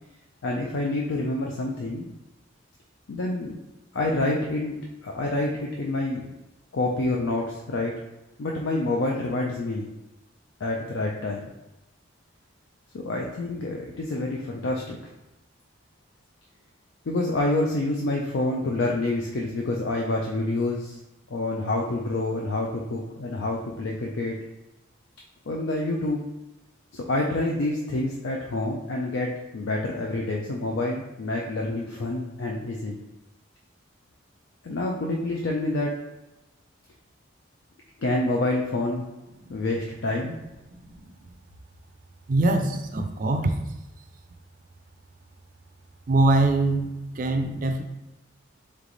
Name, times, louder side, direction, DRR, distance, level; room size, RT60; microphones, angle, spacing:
voice 1, 0.4-2.1 3.1-3.6 3.9-6.3 6.7-8.0 8.4-9.9 10.6-11.5 12.9-15.0 17.1-21.0 21.3-24.4 25.5-26.2 26.9-33.0 34.6-36.0 38.0-39.1 39.5-40.3, left 2 dB, 70° left, -1 dB, 0.5 m, -27 dB
voice 2, 40.7-41.1 42.3-43.6 46.1-47.8, right 2 dB, 45° right, 6 dB, 0.4 m, -23 dB
3.3 x 3.3 x 3.9 m, 1.0 s
head